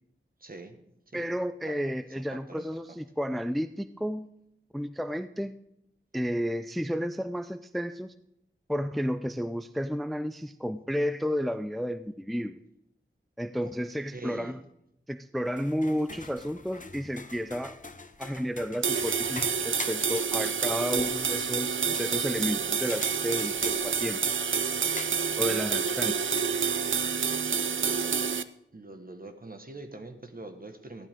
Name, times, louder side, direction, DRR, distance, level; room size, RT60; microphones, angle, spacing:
voice 1, 0.4-0.8 1.1-1.2 1.6-2.6 13.6-13.7 14.1-14.6 28.7-31.1, right 2 dB, 45° right, 6 dB, 1.5 m, -44 dB
voice 2, 1.1-4.3 4.7-5.5 6.1-8.1 8.7-12.6 13.4-14.6 15.1-17.8 18.2-24.2 25.4-26.2, equal, ahead, 12 dB, 0.4 m, -32 dB
sound 1, 15.4-27.1, left 3 dB, 40° left, 0.9 m, -45 dB
sound 2, 18.8-28.4, right 6 dB, 70° right, 0.5 m, -28 dB
14.5 x 11.5 x 3.6 m, 0.79 s
wide cardioid pair, 45°, 21 cm